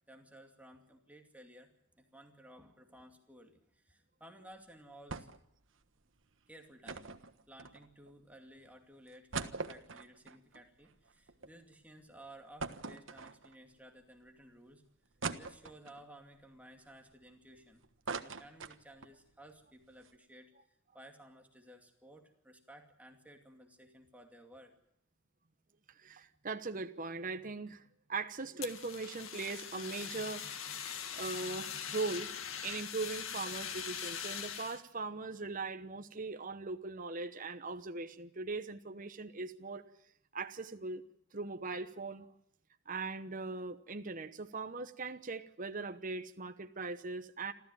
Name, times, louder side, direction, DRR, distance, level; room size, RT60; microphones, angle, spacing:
voice 1, 0.1-1.7 1.9-5.3 6.5-7.2 7.5-14.8 15.4-17.8 18.2-24.7, right 1 dB, 5° right, 2.5 m, -56 dB
sound 1, 5.1-5.5 5.8-5.9 6.9-8.1 8.7-8.8 9.1-11.5 11.9-12.0 12.6-13.7 14.3-14.4 15.2-16.1 16.6-17.6 17.8-19.2 19.5-19.6 19.9-20.1, right 4 dB, 60° right, 1.4 m, -42 dB
voice 2, 25.9-30.6 31.1-32.3 32.6-39.9 40.3-41.0 41.3-42.3 42.9-47.5, right 3 dB, 40° right, 1.0 m, -40 dB
Fire, 28.6-34.8, left 8 dB, 75° left, 1.9 m, -42 dB
28.0 x 14.0 x 9.1 m
head